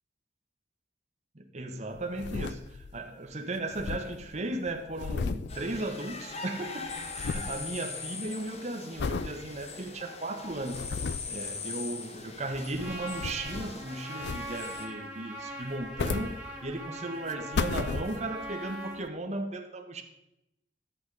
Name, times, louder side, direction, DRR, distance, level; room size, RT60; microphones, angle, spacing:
voice 1, 1.3-6.9 7.1-11.0 11.3-20.0, right 2 dB, 40° right, 4 dB, 1.2 m, -36 dB
sound 1, 1.9-3.1 3.3-3.4 3.6-6.4 6.6-7.7 8.1-8.4 9.0-9.4 9.9-10.0 10.5-11.4 12.4-13.8 14.2-14.8 15.6-16.9 17.3-18.5 19.1-19.2, left 4 dB, 70° left, 0.4 m, -35 dB
sound 2, 5.5-14.9, left 4 dB, 40° left, 1.1 m, -41 dB
Trumpet, 12.8-19.0, right 1 dB, 5° right, 2.2 m, -41 dB
11.0 x 8.3 x 4.8 m, 0.87 s
head